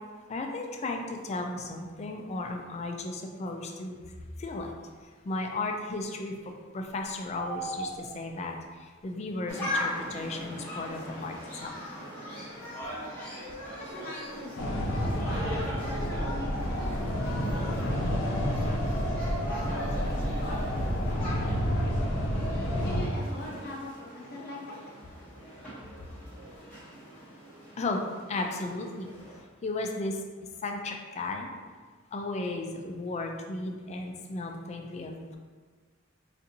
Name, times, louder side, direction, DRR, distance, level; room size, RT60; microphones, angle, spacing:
voice 1, 0.3-4.0 4.4-4.8 5.0-11.7 27.8-28.0 28.3-29.1 29.6-30.2 30.6-31.5 32.1-35.4, left 2 dB, 35° left, 3 dB, 0.3 m, -35 dB
sound 1, 7.3-8.5 10.9-11.0 13.1-13.5 13.9-14.0 14.2-15.2, right 4 dB, 70° right, 0.3 m, -39 dB
sound 2, 9.5-29.4, left 1 dB, 10° left, 0.9 m, -40 dB
voice 2, 13.8-21.9 22.8-25.0, left 1 dB, 50° left, -3 dB, 0.7 m, -43 dB
sound 3, 14.6-23.1, equal, 85° left, 0.6 m, -29 dB
4.0 x 2.5 x 2.6 m, 1.5 s
head